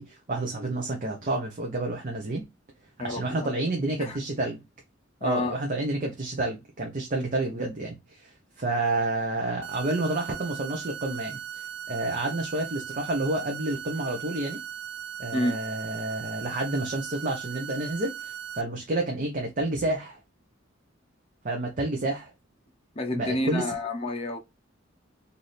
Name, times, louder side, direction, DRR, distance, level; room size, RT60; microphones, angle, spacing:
voice 1, 0.0-2.4 3.0-4.6 5.2-11.4 11.9-14.6 15.2-20.2 21.4-22.3 23.1-23.6, right 2 dB, 45° right, 0.7 m, -29 dB
voice 2, 3.0-3.5 4.0-4.2 5.2-5.6 15.3-15.6 22.9-24.4, left 1 dB, 30° left, 0.6 m, -29 dB
sound 1, 9.6-18.6, right 8 dB, 75° right, 0.5 m, -38 dB
3.3 x 2.6 x 4.1 m
head